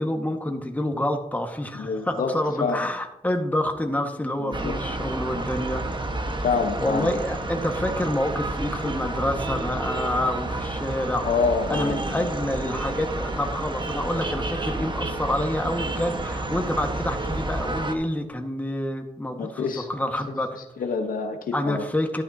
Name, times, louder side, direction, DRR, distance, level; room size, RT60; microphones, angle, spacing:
voice 1, 0.0-5.8 6.8-11.3 11.7-20.6 21.5-22.2, left 1 dB, 10° left, 4 dB, 1.7 m, -27 dB
voice 2, 1.7-2.3 2.6-2.8 4.4-4.7 6.4-7.2 11.2-12.3 19.4-19.9 20.8-21.8, left 5 dB, 75° left, 4 dB, 1.2 m, -26 dB
sound 1, 4.5-17.9, right 2 dB, 30° right, 1.4 m, -30 dB
12.0 x 11.0 x 2.9 m, 0.83 s
cardioid pair, 55°, 15 cm